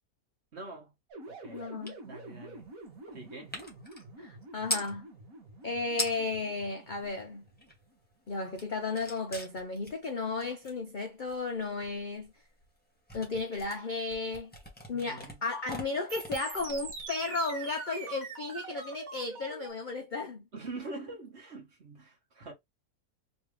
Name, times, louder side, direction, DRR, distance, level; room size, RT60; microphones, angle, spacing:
voice 1, 0.5-0.9 1.3-1.7 2.0-2.7 3.1-3.5 14.9-15.4 20.5-22.5, right 2 dB, 45° right, 1.7 m, -44 dB
sound 1, 1.1-7.8 16.1-19.7, right 3 dB, 65° right, 1.7 m, -45 dB
voice 2, 1.5-1.9 4.2-5.1 5.6-7.4 8.3-12.3 13.1-14.5 14.9-20.4, left 3 dB, 55° left, 0.5 m, -34 dB
sound 2, 1.8-2.0 2.3-4.9 5.6-5.7 5.9-6.4 6.8-7.9 8.3-17.5, left 1 dB, 5° left, 1.1 m, -41 dB
3.5 x 3.0 x 3.2 m
omnidirectional pair, 1.6 m